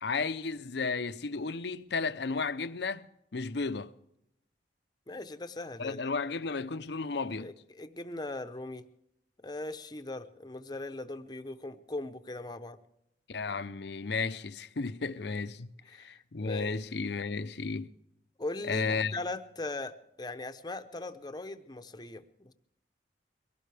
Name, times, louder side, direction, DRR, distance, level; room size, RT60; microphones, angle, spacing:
voice 1, 0.0-3.1 3.3-3.9 5.8-7.5 13.3-17.9 18.7-19.2, left 4 dB, 65° left, 0.7 m, -33 dB
voice 2, 5.1-6.0 7.4-8.8 9.4-12.8 15.8-16.8 18.4-22.5, left 2 dB, 20° left, 0.8 m, -40 dB
23.0 x 17.0 x 3.4 m
head